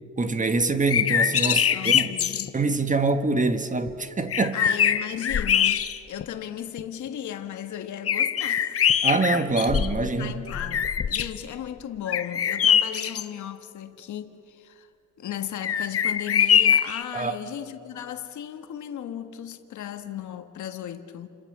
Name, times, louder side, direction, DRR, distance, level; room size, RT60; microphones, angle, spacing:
voice 1, 0.2-2.1 2.5-4.6 9.0-10.4 17.1-17.4, right 3 dB, 25° right, 1.5 m, -25 dB
sound 1, 0.7-2.5 3.9-4.0 4.3-6.2 6.8-6.9 8.1-10.1 10.5-11.4 12.1-13.2 15.6-17.0, left 8 dB, 50° left, 1.0 m, -23 dB
voice 2, 1.4-2.5 4.5-5.8 6.1-8.8 10.0-14.9 15.2-21.3, left 10 dB, 75° left, 1.6 m, -36 dB
29.5 x 26.0 x 6.8 m
cardioid pair, 90°, 30 cm